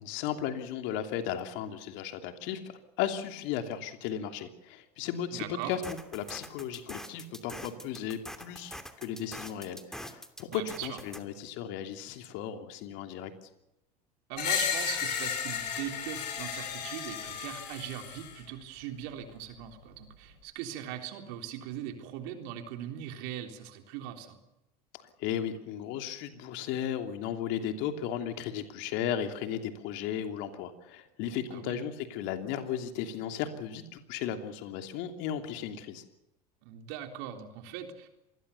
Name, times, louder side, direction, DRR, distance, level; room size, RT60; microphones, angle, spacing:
voice 1, 0.0-2.6 3.0-13.3 25.2-36.0, left 9 dB, 60° left, 6 dB, 3.0 m, -35 dB
voice 2, 5.3-5.8 10.5-11.0 14.3-24.4 31.5-31.8 36.6-38.1, right 10 dB, 65° right, 5 dB, 3.6 m, -40 dB
sound 1, 5.7-11.2, equal, ahead, 2.8 m, -44 dB
Screech, 14.4-18.4, left 7 dB, 80° left, 6.1 m, -33 dB
26.5 x 20.5 x 7.1 m, 0.90 s
hypercardioid pair, 80°, 21 cm